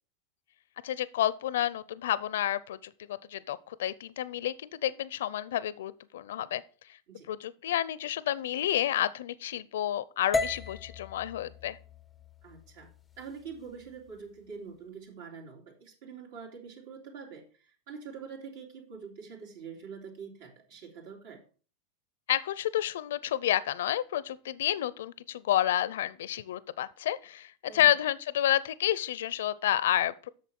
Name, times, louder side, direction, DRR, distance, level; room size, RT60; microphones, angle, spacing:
voice 1, 0.8-6.6 7.3-11.8 22.3-30.3, left 12 dB, 85° left, 0.6 m, -30 dB
sound 1, 10.3-14.5, left 3 dB, 15° left, 0.5 m, -37 dB
voice 2, 12.4-12.9 13.2-21.4 27.6-27.9, right 6 dB, 70° right, 3.4 m, -45 dB
8.4 x 6.6 x 6.0 m
supercardioid pair, 140°, 0 cm